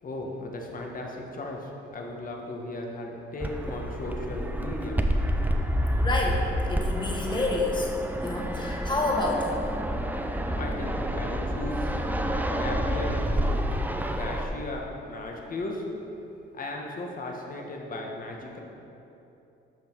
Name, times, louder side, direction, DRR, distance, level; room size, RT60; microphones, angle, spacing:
voice 1, 0.0-5.0 10.5-12.1 12.5-13.3 13.6-13.7 14.1-15.9 16.5-18.6, left 2 dB, 45° left, 0 dB, 1.6 m, -36 dB
Fixed-wing aircraft airplane, 3.4-14.4, equal, 10° right, 0.7 m, -29 dB
voice 2, 6.0-7.9 8.2-9.6, left 2 dB, 25° left, -1 dB, 1.8 m, -28 dB
13.0 x 5.5 x 4.8 m, 2.9 s
cardioid pair, 90°, 20 cm